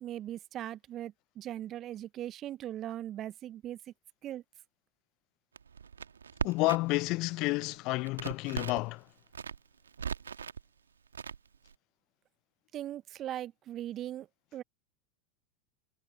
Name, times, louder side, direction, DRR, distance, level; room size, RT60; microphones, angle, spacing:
voice 1, 0.0-3.8 4.2-4.4 12.7-14.3 14.5-14.6, right 12 dB, 40° right, 0.8 m, -39 dB
Crackle, 5.6-7.0 7.3-8.9 9.3-10.6 11.1-11.7, right 6 dB, 80° right, 1.6 m, -39 dB
voice 2, 6.4-9.0, left 22 dB, 50° left, 0.4 m, -30 dB
figure-of-eight pair, 85°, 0 cm